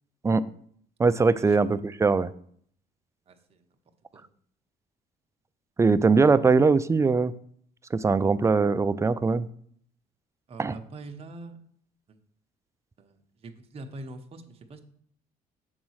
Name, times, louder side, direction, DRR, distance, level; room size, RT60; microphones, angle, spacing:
voice 1, 1.0-2.3 5.8-7.3 7.9-9.5 10.6-10.8, right 4 dB, 15° right, 14 dB, 0.3 m, -21 dB
voice 2, 3.3-3.6 4.1-4.2 10.5-11.6 12.1-12.2 13.0-14.8, right 2 dB, 35° right, 4 dB, 0.9 m, -44 dB
7.4 x 4.0 x 6.3 m, 0.62 s
cardioid pair, 110°, 17 cm